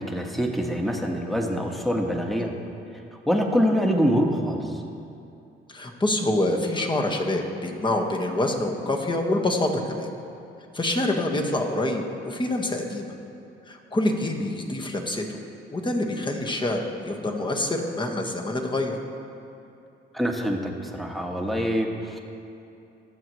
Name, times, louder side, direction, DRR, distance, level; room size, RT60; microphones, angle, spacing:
voice 1, 0.0-2.5 3.3-4.6 20.1-22.2, equal, ahead, 1 dB, 1.4 m, -25 dB
voice 2, 5.7-10.1 10.7-13.1 13.7-15.4 15.7-19.0, left 1 dB, 25° left, 1 dB, 1.5 m, -26 dB
22.0 x 8.0 x 3.2 m, 2.7 s
cardioid pair, 90°, 20 cm